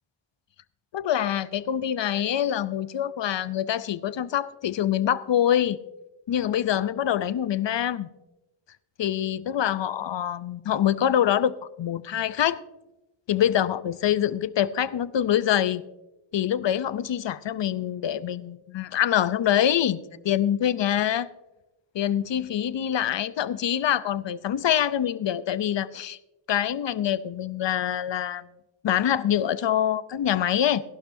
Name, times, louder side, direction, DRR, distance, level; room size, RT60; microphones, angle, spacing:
voice 1, 0.9-5.8 6.3-8.1 9.0-12.6 13.3-15.8 16.3-21.3 21.9-26.2 26.5-28.5 28.8-30.8, left 10 dB, 60° left, 0.6 m, -25 dB
18.5 x 12.0 x 2.6 m
wide cardioid pair, 100°, 48 cm